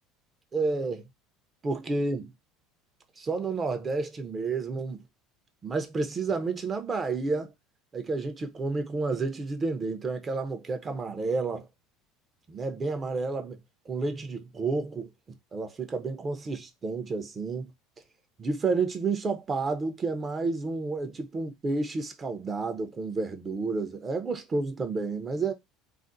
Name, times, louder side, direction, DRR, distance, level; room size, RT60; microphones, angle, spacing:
voice 1, 0.5-1.1 1.6-2.3 3.2-5.0 5.6-7.5 7.9-11.7 12.5-13.6 13.9-15.1 15.5-17.7 18.4-25.5, right 3 dB, 25° right, 0.6 m, -30 dB
2.4 x 2.0 x 3.8 m
supercardioid pair, 115°, 0 cm